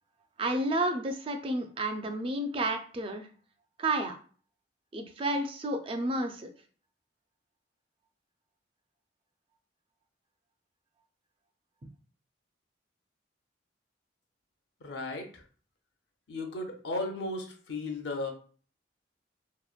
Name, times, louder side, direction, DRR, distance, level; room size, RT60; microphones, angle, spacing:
voice 1, 0.4-3.3 3.8-4.2 4.9-6.5, right 1 dB, 30° right, 6 dB, 0.3 m, -31 dB
voice 2, 14.8-15.4 16.3-18.3, left 2 dB, 70° left, 4 dB, 0.5 m, -35 dB
2.9 x 2.1 x 2.4 m, 0.41 s
head